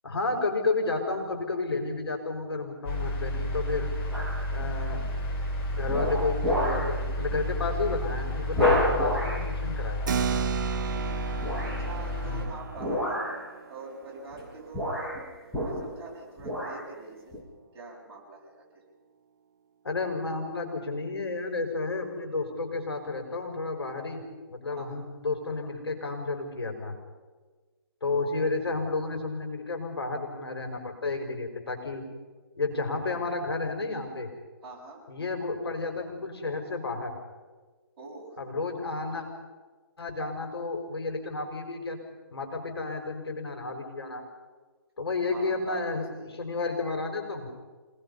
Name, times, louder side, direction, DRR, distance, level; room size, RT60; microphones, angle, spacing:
voice 1, 0.0-3.9 4.5-5.1 5.7-10.3 12.2-12.5 19.8-24.2 24.5-26.9 28.0-32.0 32.6-34.3 35.1-37.1 38.4-39.3 40.0-42.0 42.3-44.2 45.0-47.5, left 3 dB, 75° left, 3 dB, 5.7 m, -31 dB
sound 1, 2.8-12.4, left 1 dB, 30° left, 5.2 m, -31 dB
sound 2, 4.1-4.5 5.0-5.3 5.9-6.9 7.3-7.5 7.8-7.9 8.5-9.4 11.4-11.8 12.8-13.4 14.3-14.4 14.7-16.1 16.4-16.8 17.3-17.4, left 1 dB, 5° left, 6.7 m, -29 dB
voice 2, 4.6-4.9 10.8-11.2 11.6-15.2 15.6-17.3 17.7-18.8 24.7-25.0 34.6-35.0 38.0-38.4 45.3-46.4, right 3 dB, 20° right, -5 dB, 6.9 m, -45 dB
Keyboard (musical), 10.1-16.1, right 8 dB, 50° right, 0.8 m, -35 dB
27.0 x 20.0 x 5.7 m, 1.3 s
hypercardioid pair, 150°, 13 cm